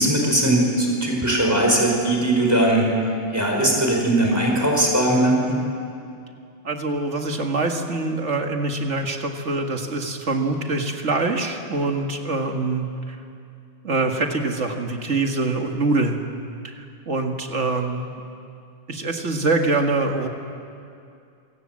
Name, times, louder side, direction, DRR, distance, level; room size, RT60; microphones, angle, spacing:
voice 1, 0.0-5.6, right 1 dB, 15° right, -1 dB, 5.0 m, -20 dB
voice 2, 6.6-13.2 13.8-16.2 16.6-18.1 18.9-20.3, right 3 dB, 70° right, 3 dB, 2.2 m, -24 dB
27.0 x 18.5 x 7.6 m, 2.5 s
omnidirectional pair, 1.3 m